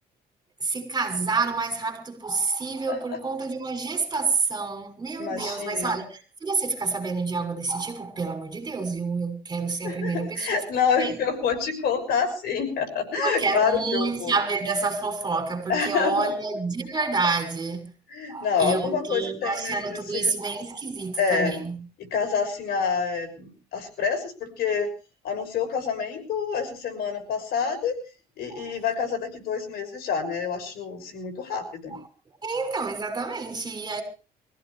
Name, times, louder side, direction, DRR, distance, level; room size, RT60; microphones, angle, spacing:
voice 1, 0.6-10.6 10.9-11.1 13.2-17.9 18.3-21.8 28.5-28.7 32.4-34.0, right 4 dB, 25° right, 6.4 m, -28 dB
voice 2, 5.2-6.0 9.8-14.3 15.7-16.3 18.1-20.3 21.2-21.6 22.0-24.9 25.2-28.0 28.4-32.0, left 6 dB, 70° left, 6.1 m, -27 dB
24.5 x 16.0 x 3.3 m
cardioid pair, 110°, 17 cm